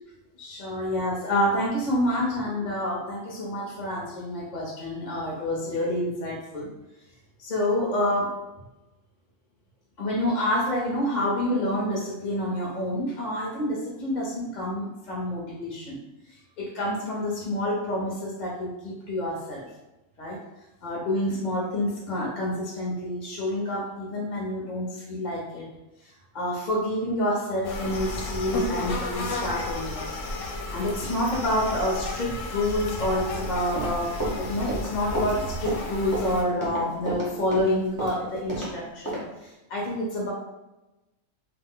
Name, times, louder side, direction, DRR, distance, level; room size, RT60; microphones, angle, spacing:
voice 1, 0.4-6.7 7.4-8.4 10.0-16.0 16.6-19.7 20.2-20.4 20.8-25.7 26.3-30.0 30.7-34.1 34.4-40.3, left 1 dB, 50° left, -3 dB, 0.6 m, -28 dB
sound 1, 27.6-36.4, left 2 dB, 70° left, 0.9 m, -33 dB
Run, 33.6-38.7 39.1-39.2, right 1 dB, 25° right, 0.4 m, -31 dB
2.4 x 2.1 x 3.7 m, 1.0 s
omnidirectional pair, 1.5 m